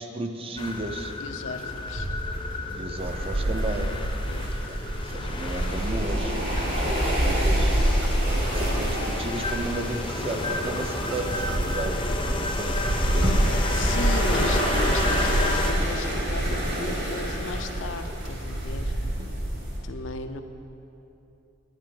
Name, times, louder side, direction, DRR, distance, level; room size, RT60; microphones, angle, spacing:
voice 1, 0.0-1.1 2.7-3.9 4.6-4.8 5.1-7.8 8.5-13.3, right 2 dB, 30° right, 5 dB, 0.5 m, -34 dB
sound 1, 0.6-15.7, left 2 dB, 25° left, 0.6 m, -32 dB
voice 2, 1.2-2.1 4.3-4.5 13.2-13.4 13.7-18.9 19.8-20.4, left 4 dB, 70° left, 7 dB, 0.5 m, -36 dB
sound 2, 1.5-17.9 18.2-18.6, right 1 dB, 80° right, 1.2 m, -41 dB
sound 3, 3.0-19.8, right 1 dB, 60° right, 2.3 m, -26 dB
10.5 x 9.7 x 3.8 m, 2.8 s
head